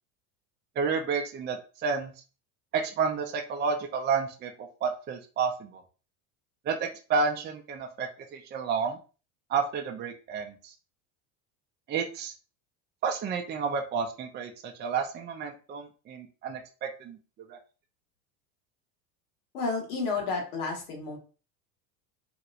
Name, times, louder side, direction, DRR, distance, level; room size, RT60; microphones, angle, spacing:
voice 1, 0.8-2.1 2.7-5.8 6.7-9.0 9.5-10.5 11.9-12.3 13.0-17.2 17.5-17.6, right 5 dB, 25° right, 3 dB, 0.4 m, -30 dB
voice 2, 19.5-21.2, left 4 dB, 85° left, 0 dB, 1.4 m, -31 dB
2.9 x 2.9 x 2.4 m, 0.35 s
supercardioid pair, 100°, 43 cm